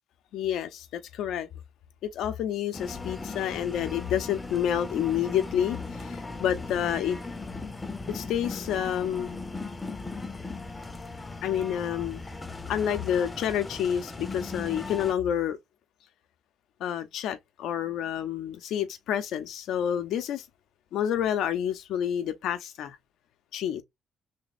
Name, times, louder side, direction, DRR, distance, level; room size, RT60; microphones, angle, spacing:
voice 1, 0.3-1.5 2.0-7.2 8.1-9.4 11.4-12.2 12.7-15.6 16.8-20.5 20.9-23.0 23.5-23.8, left 9 dB, 80° left, 0.6 m, -29 dB
sound 1, 2.7-15.1, left 3 dB, 20° left, 0.7 m, -38 dB
3.4 x 2.1 x 4.1 m
cardioid pair, 90°, 0 cm